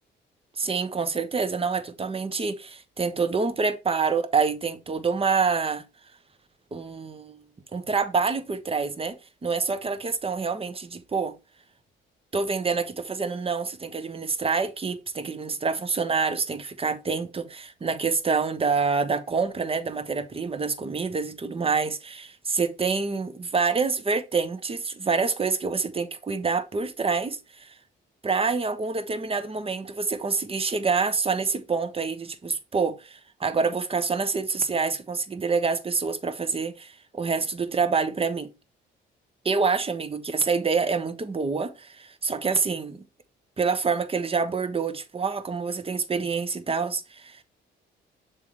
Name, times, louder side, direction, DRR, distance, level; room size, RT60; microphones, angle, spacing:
voice 1, 0.6-5.8 6.7-7.4 7.7-9.2 9.4-11.3 12.3-27.7 28.2-38.5 39.4-43.0 43.6-47.4, right 4 dB, 30° right, 1.0 m, -27 dB
7.3 x 3.4 x 4.5 m
cardioid pair, 90°, 20 cm